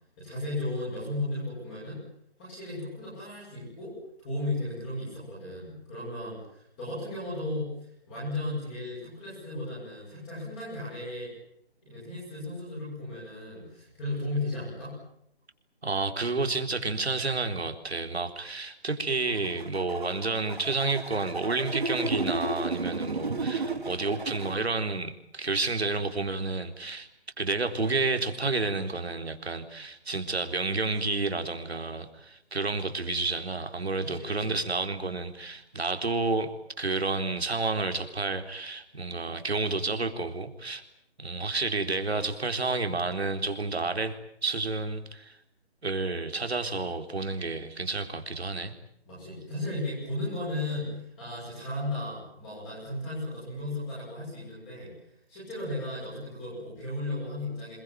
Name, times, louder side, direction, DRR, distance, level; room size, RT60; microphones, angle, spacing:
voice 1, 0.2-2.0 2.4-11.3 11.8-15.0 34.0-34.6 49.1-54.9 55.3-57.8, left 1 dB, 10° left, -7 dB, 7.8 m, -35 dB
voice 2, 15.8-27.1 27.4-40.8 41.2-45.4 45.8-48.7, right 3 dB, 70° right, 6 dB, 4.1 m, -30 dB
sound 1, 19.3-24.6, right 3 dB, 45° right, 5.3 m, -33 dB
28.0 x 21.5 x 9.3 m, 0.73 s
hypercardioid pair, 180°, 33 cm